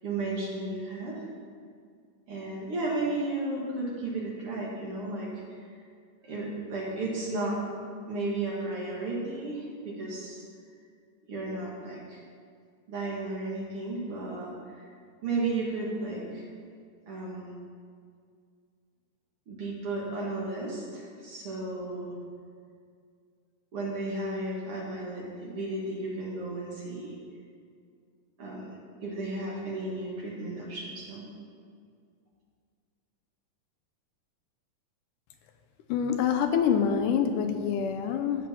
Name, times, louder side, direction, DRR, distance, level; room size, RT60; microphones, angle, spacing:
voice 1, 0.0-1.2 2.3-5.7 6.2-7.6 8.1-10.4 11.3-12.2 12.9-14.9 15.2-16.4 17.1-17.5 19.5-22.2 23.7-27.2 28.4-28.7 29.0-31.2, right 2 dB, 50° right, -4 dB, 2.3 m, -34 dB
voice 2, 35.9-38.5, left 7 dB, 80° left, 7 dB, 2.2 m, -26 dB
15.0 x 5.1 x 5.6 m, 2.2 s
omnidirectional pair, 3.8 m